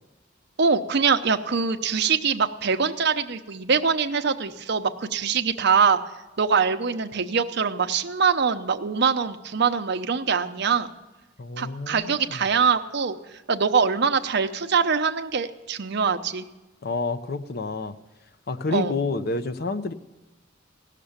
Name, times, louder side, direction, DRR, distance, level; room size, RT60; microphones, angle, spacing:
voice 1, 0.6-6.0 6.4-10.9 11.6-13.2 13.5-16.5 18.7-18.9, right 5 dB, 55° right, 8 dB, 0.7 m, -23 dB
voice 2, 11.4-12.4 16.8-18.0 18.5-19.9, left 3 dB, 50° left, 10 dB, 0.7 m, -29 dB
16.5 x 6.7 x 8.8 m, 1.1 s
head